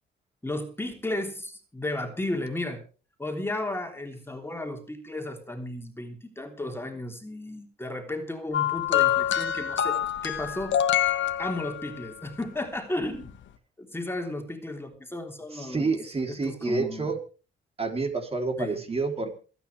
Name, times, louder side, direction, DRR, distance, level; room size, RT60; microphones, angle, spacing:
voice 1, 0.4-2.8 3.2-10.8 11.4-13.4 13.8-16.0 16.3-17.1 18.6-18.8, left 1 dB, 10° left, 3 dB, 3.4 m, -34 dB
sound 1, 8.5-12.1 13.1-13.3, left 11 dB, 70° left, 1.8 m, -26 dB
voice 2, 15.5-17.2 17.8-19.4, right 3 dB, 30° right, 4 dB, 3.6 m, -29 dB
27.5 x 9.4 x 3.5 m, 0.36 s
cardioid pair, 90°, 20 cm